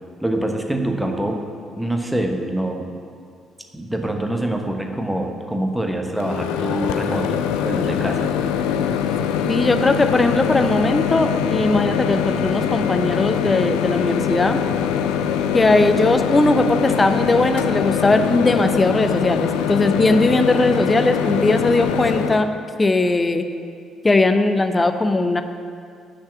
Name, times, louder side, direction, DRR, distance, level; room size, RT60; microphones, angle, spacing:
voice 1, 0.2-1.4 1.8-2.9 3.7-8.3, right 1 dB, 5° right, 3 dB, 1.1 m, -25 dB
Microwave oven, 6.2-22.4, left 8 dB, 65° left, 0.4 m, -23 dB
voice 2, 9.5-14.6 15.5-22.5 22.8-23.4 24.0-25.4, left 2 dB, 20° left, 8 dB, 0.6 m, -19 dB
6.2 x 6.2 x 7.3 m, 2.3 s
figure-of-eight pair, 45°, 0 cm